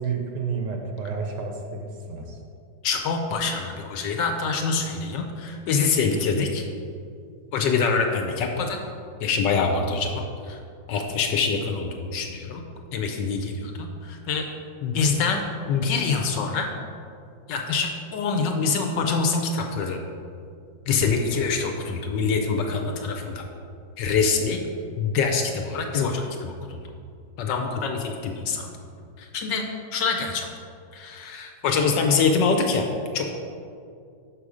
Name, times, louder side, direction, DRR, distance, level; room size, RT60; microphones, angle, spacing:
voice 1, 0.0-2.4, right 5 dB, 70° right, 3 dB, 1.2 m, -30 dB
voice 2, 2.8-6.6 7.5-8.8 9.2-10.6 10.9-12.6 12.9-14.5 14.8-16.7 17.5-20.0 20.9-23.4 24.0-24.6 25.0-26.8 27.4-28.7 29.2-30.5 30.9-32.9 33.1-33.3, left 5 dB, 75° left, 3 dB, 1.2 m, -25 dB
6.2 x 5.5 x 4.8 m, 2.4 s
omnidirectional pair, 2.2 m